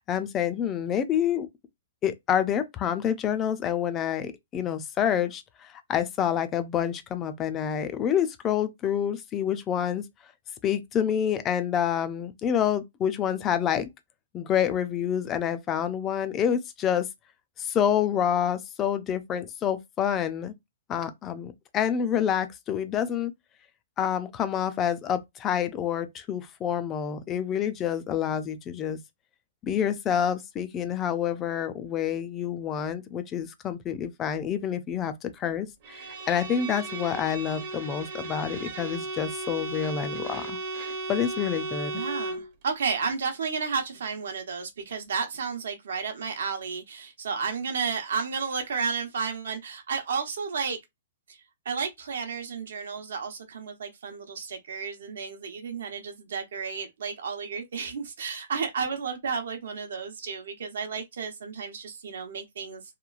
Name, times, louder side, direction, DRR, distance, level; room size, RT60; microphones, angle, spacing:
voice 1, 0.0-1.5 2.0-10.0 10.6-13.9 14.3-17.1 17.6-20.5 20.9-23.3 24.0-29.0 29.6-40.6 41.1-42.0, left 9 dB, 20° left, 0.3 m, -28 dB
Bowed string instrument, 35.8-42.5, right 3 dB, 35° right, 0.6 m, -35 dB
voice 2, 41.9-50.8 51.3-62.8, right 5 dB, 75° right, 0.7 m, -32 dB
2.9 x 2.2 x 2.3 m
hypercardioid pair, 165°, 0 cm